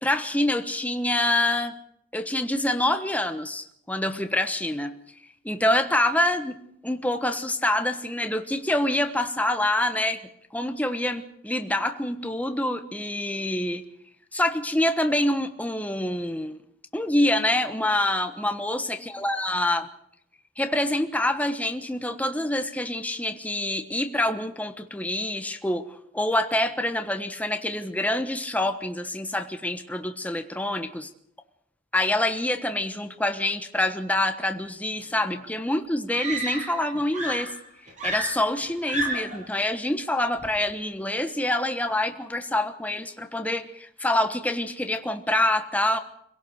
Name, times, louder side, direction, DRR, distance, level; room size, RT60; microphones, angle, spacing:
voice 1, 0.0-1.7 2.1-4.9 5.4-10.2 10.5-13.8 14.3-16.6 16.9-19.9 20.6-31.1 31.9-37.5 38.0-46.0, left 1 dB, 10° left, 7 dB, 1.3 m, -26 dB
Screaming, 35.3-35.4 36.1-36.9 37.1-39.4 40.4-40.7, right 1 dB, 40° right, 7.6 m, -31 dB
25.5 x 17.0 x 6.5 m, 0.70 s
head